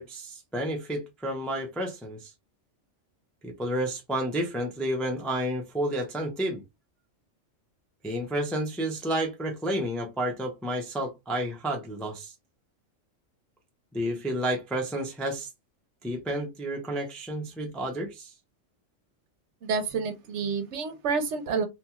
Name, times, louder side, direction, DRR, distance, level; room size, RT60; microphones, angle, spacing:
voice 1, 0.0-2.3 3.4-6.6 8.0-12.3 13.9-15.5 16.0-18.3, right 1 dB, ahead, 0.3 m, -31 dB
voice 2, 19.6-21.6, right 5 dB, 70° right, 0.9 m, -29 dB
2.8 x 2.3 x 2.8 m
omnidirectional pair, 1.3 m